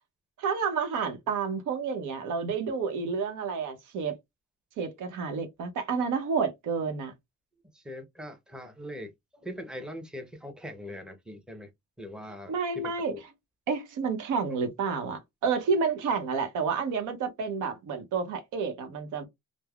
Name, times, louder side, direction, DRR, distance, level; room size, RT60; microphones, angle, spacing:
voice 1, 0.4-4.2 4.8-7.1 12.5-13.1 13.7-19.3, right 5 dB, 85° right, 0.8 m, -30 dB
voice 2, 7.7-11.7 12.0-13.2, left 1 dB, 5° right, 0.7 m, -41 dB
3.2 x 2.0 x 2.3 m
cardioid pair, 90°, 30 cm